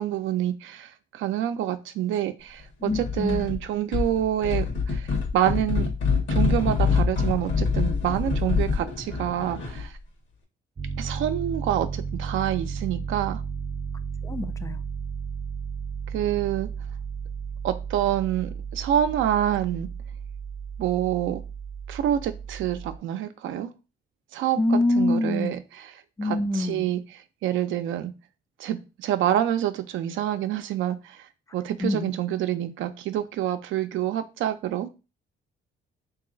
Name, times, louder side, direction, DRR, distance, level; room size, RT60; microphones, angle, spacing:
voice 1, 0.0-5.1 5.3-5.9 6.3-9.9 11.0-13.4 16.1-16.7 17.6-19.9 20.8-21.4 21.9-23.7 24.3-25.6 26.2-27.0 27.4-28.1 28.6-31.2 31.5-34.9, right 11 dB, 80° right, 0.5 m, -27 dB
voice 2, 2.8-3.5 14.2-14.8 24.6-25.6 26.2-26.9 31.8-32.2, left 2 dB, 15° left, 0.4 m, -25 dB
sound 1, 2.9-3.6 3.9-9.9, left 4 dB, 70° left, 1.2 m, -25 dB
Piano, 10.8-23.0, right 6 dB, 30° right, 0.6 m, -34 dB
3.0 x 2.7 x 3.8 m
cardioid pair, 90°, 20 cm